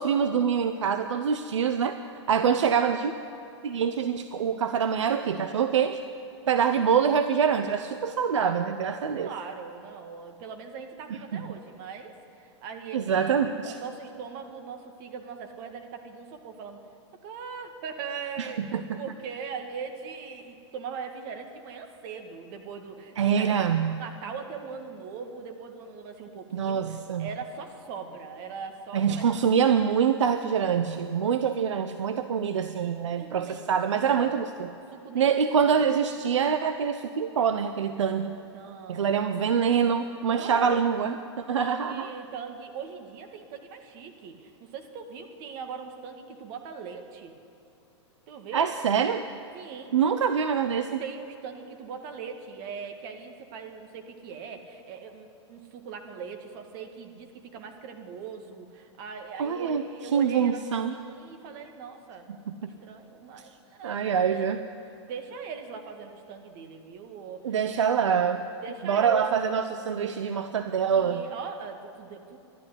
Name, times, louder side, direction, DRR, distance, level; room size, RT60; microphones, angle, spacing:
voice 1, 0.0-2.0 2.3-3.1 3.6-6.0 6.5-9.3 11.3-11.4 12.9-13.8 18.4-19.0 23.2-24.0 26.5-27.3 28.9-34.7 35.1-38.4 38.9-42.1 48.5-49.2 49.9-51.0 59.4-59.8 60.1-60.9 62.5-62.7 63.8-64.6 67.4-68.4 68.8-71.2, right 7 dB, 80° right, 9 dB, 0.7 m, -25 dB
voice 2, 2.3-2.7 9.1-16.8 17.2-23.5 24.0-29.3 32.0-32.1 33.2-34.3 34.9-35.9 38.5-39.2 40.3-40.9 41.5-47.4 48.3-48.7 49.5-50.0 51.0-60.6 60.9-62.4 62.6-64.5 65.0-67.9 68.6-69.4 69.7-69.8 70.9-72.4, right 6 dB, 50° right, 5 dB, 1.9 m, -40 dB
12.5 x 11.5 x 9.7 m, 2.8 s
hypercardioid pair, 110°, 15 cm